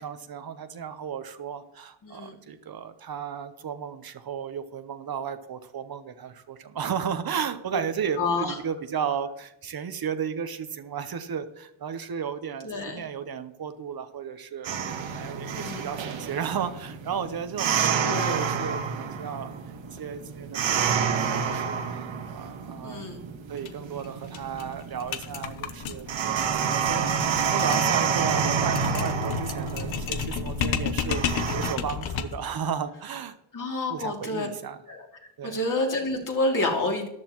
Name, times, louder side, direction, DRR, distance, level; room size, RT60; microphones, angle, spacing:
voice 1, 0.0-19.5 20.0-21.8 22.3-23.1 23.5-31.2 31.5-33.4 33.9-34.8 35.4-35.6, right 7 dB, 50° right, 9 dB, 0.9 m, -34 dB
voice 2, 2.0-2.3 8.2-8.6 12.6-13.0 15.5-15.9 17.8-18.4 22.8-23.2 33.5-34.5 34.9-35.0 35.4-37.1, left 2 dB, 45° left, 0 dB, 2.7 m, -28 dB
sound 1, 14.6-31.7, right 6 dB, 75° right, 1.4 m, -29 dB
sound 2, 23.6-23.7 24.0-24.1 24.3-32.5, left 7 dB, 85° left, 1.0 m, -32 dB
13.5 x 11.0 x 3.0 m, 0.82 s
cardioid pair, 110°, 46 cm